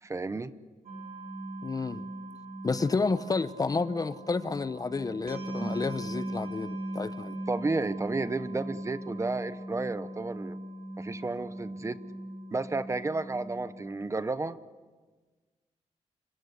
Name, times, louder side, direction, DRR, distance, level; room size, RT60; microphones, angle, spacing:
voice 1, 0.0-0.5 5.6-5.8 7.5-10.6 11.0-12.0 12.5-14.6, right 3 dB, 25° right, 0.9 m, -32 dB
sound 1, 0.9-13.9, right 1 dB, 60° right, 3.7 m, -39 dB
voice 2, 1.6-2.0 2.6-7.4, left 4 dB, 30° left, 0.8 m, -30 dB
27.5 x 23.0 x 8.3 m
wide cardioid pair, 125°, 12 cm